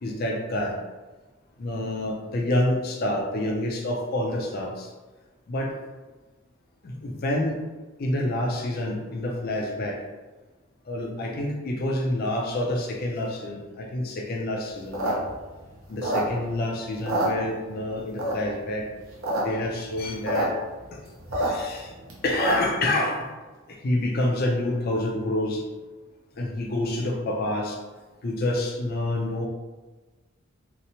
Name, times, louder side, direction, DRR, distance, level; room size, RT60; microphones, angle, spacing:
voice 1, 0.0-0.8 1.6-4.9 5.5-5.8 6.8-7.6 8.0-10.0 10.9-15.2 15.9-18.9 19.4-20.5 20.9-21.0 21.3-21.9 22.2-23.3 23.7-25.6 26.3-27.8 28.2-29.5, left 1 dB, 50° left, 1 dB, 0.4 m, -28 dB
sound 1, 14.8-16.6 16.9-17.8 18.2-18.6 19.0-19.4 19.7-19.8 19.9-20.5 20.8-22.8, right 1 dB, 80° right, 0.7 m, -27 dB
2.9 x 2.0 x 2.6 m, 1.2 s
head